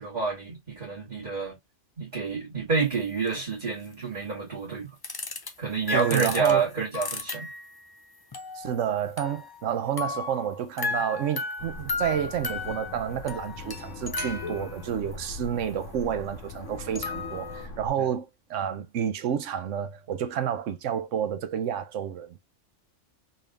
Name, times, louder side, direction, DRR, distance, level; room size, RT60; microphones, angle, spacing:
voice 1, 0.0-1.6 2.0-4.9 5.6-7.5 18.0-18.1, right 5 dB, 35° right, 2.1 m, -28 dB
sound 1, 2.9-3.0 3.3-3.4 5.0-5.5 5.9-7.8 8.3-9.7 10.0-15.1 16.5-16.6 16.9-17.7, left 4 dB, 30° left, 0.4 m, -35 dB
voice 2, 5.9-6.6 8.5-22.4, right 9 dB, 75° right, 1.0 m, -30 dB
sound 2, 11.6-17.9, left 3 dB, 75° left, 1.4 m, -41 dB
4.1 x 3.4 x 2.4 m
omnidirectional pair, 1.3 m